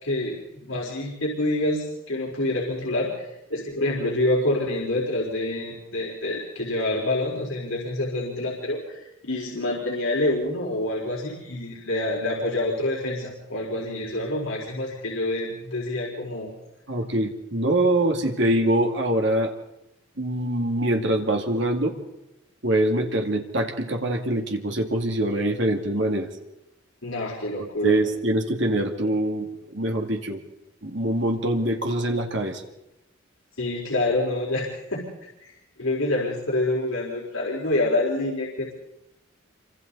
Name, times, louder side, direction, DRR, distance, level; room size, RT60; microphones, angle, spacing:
voice 1, 0.0-3.1 3.5-16.5 27.0-27.9 33.6-35.1 35.4-35.5 35.8-38.7, left 1 dB, 85° left, -3 dB, 4.4 m, -27 dB
voice 2, 16.9-19.5 20.2-21.9 22.6-26.3 27.6-29.5 29.7-30.4 30.8-32.6, right 1 dB, 60° right, 3 dB, 2.3 m, -24 dB
28.5 x 25.0 x 4.1 m, 0.90 s
head